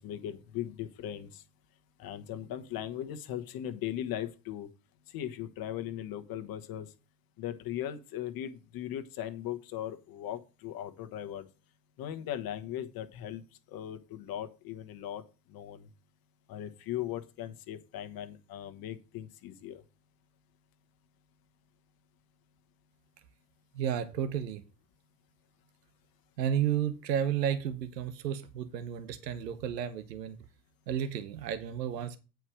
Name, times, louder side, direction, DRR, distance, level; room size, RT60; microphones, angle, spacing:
voice 1, 0.0-1.4 2.0-4.7 5.1-6.9 7.4-11.5 12.0-13.4 13.7-15.2 15.5-15.9 16.5-19.8, left 11 dB, 45° left, 1.2 m, -38 dB
voice 2, 23.7-24.6 26.4-30.4 30.9-32.2, right 9 dB, 85° right, 1.1 m, -32 dB
8.9 x 4.7 x 6.2 m
hypercardioid pair, 80°, 48 cm